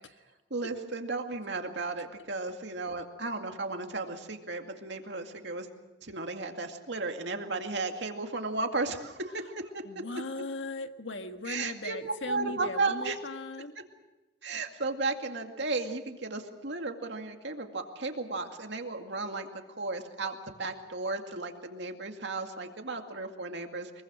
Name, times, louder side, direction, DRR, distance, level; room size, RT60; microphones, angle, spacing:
voice 1, 0.5-5.7 6.0-9.8 11.4-13.2 14.4-24.0, right 3 dB, 65° right, 4 dB, 2.2 m, -34 dB
voice 2, 9.8-13.7, left 3 dB, 75° left, 7 dB, 1.5 m, -38 dB
24.0 x 22.5 x 6.2 m, 1.1 s
head